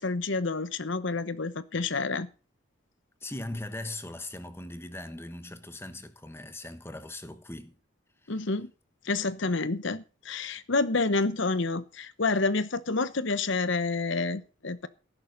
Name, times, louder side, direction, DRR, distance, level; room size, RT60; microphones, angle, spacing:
voice 1, 0.0-2.3 8.3-8.7 9.0-14.9, left 3 dB, 65° left, 0.9 m, -29 dB
voice 2, 3.2-7.8 8.2-8.5, left 1 dB, 10° left, 1.2 m, -40 dB
14.0 x 11.5 x 4.0 m
head